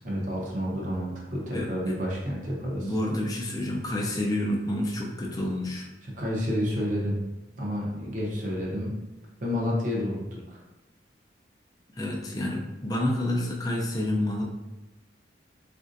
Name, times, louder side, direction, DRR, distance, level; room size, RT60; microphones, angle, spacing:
voice 1, 0.0-3.0 6.0-7.2 7.6-8.9 9.4-10.6, equal, 45° right, -4 dB, 0.7 m, -30 dB
voice 2, 2.8-5.9 12.0-14.4, left 1 dB, 20° left, -1 dB, 0.5 m, -28 dB
4.1 x 2.5 x 2.6 m, 1.0 s
head